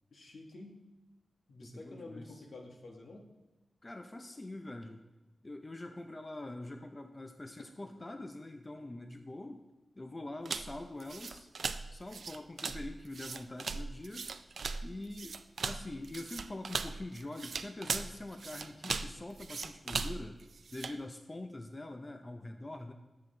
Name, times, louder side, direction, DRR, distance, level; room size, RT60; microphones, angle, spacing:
voice 1, 0.1-0.8 1.5-3.2, left 2 dB, 70° left, 1 dB, 1.3 m, -49 dB
voice 2, 1.6-2.4 3.8-5.0 5.4-9.6 10.0-11.5 11.9-14.3 14.8-20.4 20.7-22.9, left 2 dB, 25° left, 5 dB, 0.5 m, -44 dB
sound 1, 10.5-21.0, right 4 dB, 65° right, 0.4 m, -39 dB
10.5 x 7.5 x 3.8 m, 1.1 s
wide cardioid pair, 130°, 0 cm